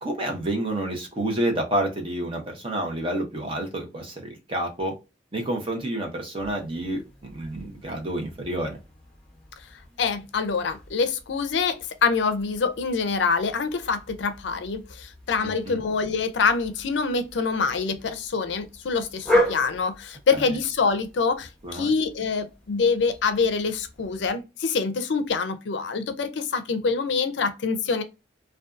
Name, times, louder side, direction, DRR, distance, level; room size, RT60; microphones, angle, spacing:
voice 1, 0.0-4.9 5.3-8.8 15.4-15.8 20.3-20.5 21.6-21.9, right 1 dB, 30° right, 0.8 m, -29 dB
sound 1, 6.4-24.3, left 1 dB, 5° left, 0.8 m, -35 dB
voice 2, 10.0-28.0, left 5 dB, 70° left, 0.5 m, -25 dB
2.5 x 2.3 x 2.3 m
head